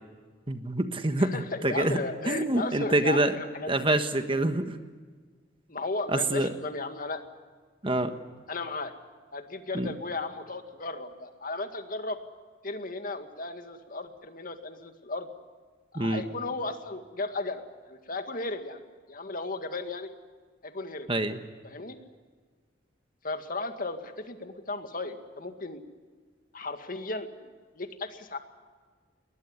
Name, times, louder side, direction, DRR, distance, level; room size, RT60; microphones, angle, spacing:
voice 1, 0.5-2.0 2.3-3.4 3.7-4.8 6.1-6.5 7.8-8.1 9.7-9.9 15.9-16.2 21.1-21.4, right 2 dB, 30° right, 8 dB, 1.4 m, -26 dB
voice 2, 1.2-3.9 5.7-7.2 8.5-8.9 9.3-12.2 12.6-15.3 15.9-18.8 19.1-20.1 20.6-21.1 21.6-22.0 23.2-25.8 26.5-27.3 27.8-28.4, left 3 dB, 50° left, 7 dB, 2.1 m, -35 dB
21.0 x 21.0 x 9.8 m, 1.5 s
head